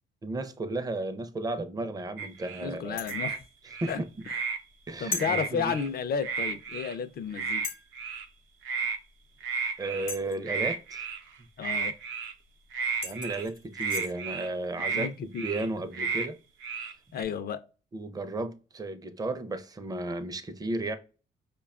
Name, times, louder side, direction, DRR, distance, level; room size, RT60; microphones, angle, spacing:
voice 1, 0.2-3.0 3.8-4.3 4.9-5.7 9.8-11.0 13.0-16.4 17.9-21.0, right 2 dB, 20° right, 0.4 m, -34 dB
sound 1, 2.2-2.6 3.0-3.4 3.7-4.6 5.1-5.9 6.2-7.0 7.3-7.7 7.9-8.2 8.6-9.0 9.4-10.1 10.4-11.3 11.6-12.3 12.7-13.4 13.7-14.5 14.8-15.1 15.3-15.7 15.9-16.3 16.6-17.2, right 5 dB, 80° right, 0.5 m, -33 dB
voice 2, 2.6-3.4 3.9-4.0 4.3-4.4 5.0-7.6 11.6-11.9 14.9-15.5 17.1-17.6, left 6 dB, 50° left, 0.4 m, -32 dB
sound 2, 3.0-3.3 5.1-5.3 6.7-6.8 7.6-7.9 10.1-10.5 12.5-12.6 13.0-14.1, left 4 dB, 80° left, 0.8 m, -37 dB
4.9 x 2.2 x 2.3 m
cardioid pair, 90°, 20 cm